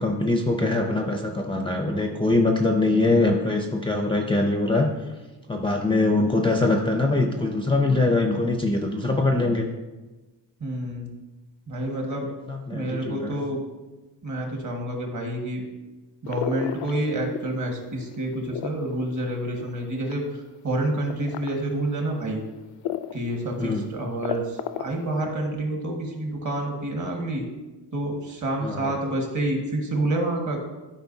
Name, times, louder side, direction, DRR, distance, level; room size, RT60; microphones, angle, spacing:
voice 1, 0.0-4.9 5.5-9.7 12.5-13.3 23.6-23.8 28.6-28.9, left 2 dB, 10° left, 2 dB, 0.5 m, -23 dB
voice 2, 10.6-11.1 11.7-12.3 12.7-13.6 14.2-15.6 16.2-20.2 20.6-22.4 23.1-27.4 27.9-30.6, right 1 dB, 45° right, 1 dB, 1.6 m, -28 dB
sound 1, 16.3-17.7 18.0-20.3 21.1-21.5 22.1-22.2 22.8-23.3 23.6-23.7 24.0-25.1, left 11 dB, 80° left, 0.5 m, -32 dB
13.0 x 5.2 x 2.7 m, 1.2 s
wide cardioid pair, 160°, 43 cm